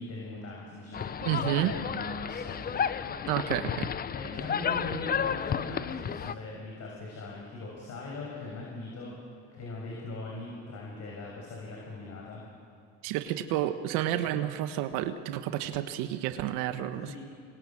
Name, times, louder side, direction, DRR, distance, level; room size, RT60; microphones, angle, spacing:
voice 1, 0.0-3.1 4.1-9.1 9.5-12.4 17.1-17.2, left 2 dB, 50° left, -2 dB, 6.9 m, -40 dB
sound 1, 0.9-6.3, left 8 dB, 30° left, 0.7 m, -32 dB
voice 2, 1.2-1.7 3.3-3.9 13.0-17.2, right 12 dB, 75° right, 9 dB, 1.4 m, -30 dB
27.5 x 24.5 x 7.4 m, 2.4 s
supercardioid pair, 105°, 33 cm